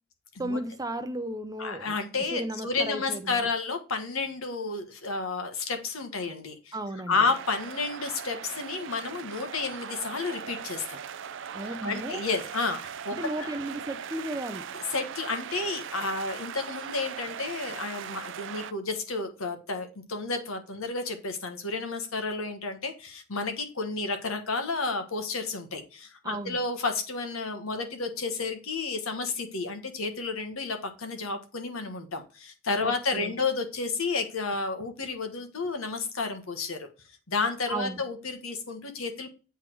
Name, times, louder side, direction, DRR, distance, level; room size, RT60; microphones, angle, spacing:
voice 1, 0.4-2.0 2.3-3.5 6.7-7.2 11.5-12.2 13.1-14.6 26.2-26.6 32.8-33.3 37.7-38.0, right 1 dB, 15° right, 0.6 m, -34 dB
voice 2, 1.6-6.8 7.1-11.0 11.8-13.5 14.9-36.9 37.3-39.3, left 3 dB, 75° left, 1.3 m, -31 dB
sound 1, 7.3-18.7, right 8 dB, 60° right, 0.4 m, -39 dB
8.2 x 3.6 x 4.6 m
head